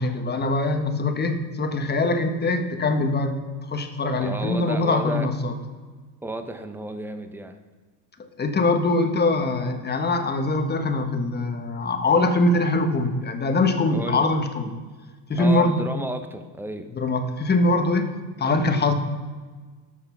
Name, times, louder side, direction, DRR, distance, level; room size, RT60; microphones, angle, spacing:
voice 1, 0.0-3.4 3.7-5.5 8.4-14.7 15.3-15.8 16.9-18.1 18.4-18.9, left 2 dB, 20° left, 7 dB, 1.2 m, -23 dB
voice 2, 4.2-5.3 6.2-7.6 13.9-14.3 15.4-16.9, right 1 dB, 5° right, 7 dB, 0.9 m, -32 dB
13.5 x 6.5 x 6.0 m, 1.4 s
supercardioid pair, 110°, 50 cm